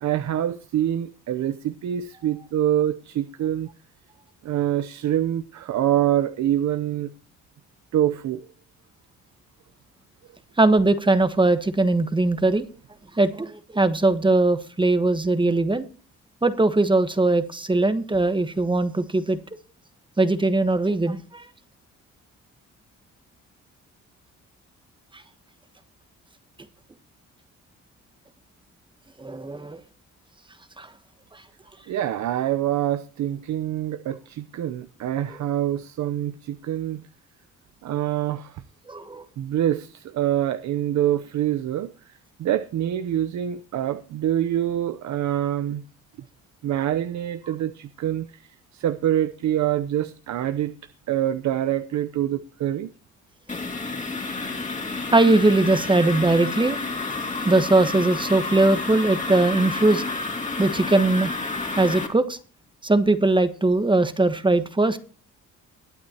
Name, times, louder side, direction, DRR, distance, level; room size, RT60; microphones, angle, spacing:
voice 1, 0.0-3.7 4.4-7.1 7.9-8.4 31.9-37.0 37.8-38.6 39.4-45.8 46.6-50.7 51.1-52.9, right 11 dB, 65° right, 0.8 m, -25 dB
voice 2, 10.6-12.6 13.1-15.9 16.4-19.4 20.2-21.5 29.2-29.8 30.8-30.9 31.3-31.4 38.9-39.2 55.1-56.8 57.4-60.0 60.6-61.3 61.8-62.4 62.8-65.0, right 2 dB, 15° right, 1.2 m, -20 dB
sound 1, 53.5-62.1, left 3 dB, 25° left, 2.7 m, -30 dB
21.5 x 8.6 x 2.9 m
cardioid pair, 90°, 30 cm